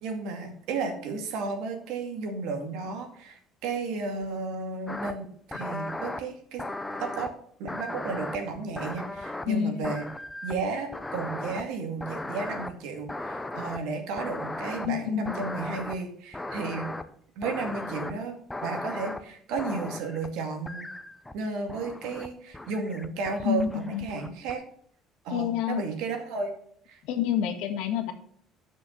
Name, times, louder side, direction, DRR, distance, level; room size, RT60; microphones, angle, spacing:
voice 1, 0.0-6.6 7.0-7.3 7.6-10.1 10.4-16.9 17.4-20.9 21.3-24.6 25.2-26.5 26.9-27.0, right 4 dB, 85° right, 4 dB, 2.2 m, -33 dB
sound 1, 4.9-5.1 5.5-6.2 6.6-7.3 7.7-9.6 9.8-10.7 10.9-11.6 12.0-12.7 13.1-13.8 14.2-14.9 15.3-16.0 16.3-17.0 17.4-18.1 18.5-19.2 19.6-20.3 20.7-21.3 21.7-22.3 22.5-24.5, left 2 dB, 5° left, 0.5 m, -36 dB
voice 2, 9.5-9.9 14.9-15.3 23.4-24.1 25.3-25.8 27.0-28.1, left 9 dB, 80° left, 4 dB, 1.5 m, -28 dB
8.5 x 6.3 x 5.5 m, 0.64 s
cardioid pair, 175°, 0 cm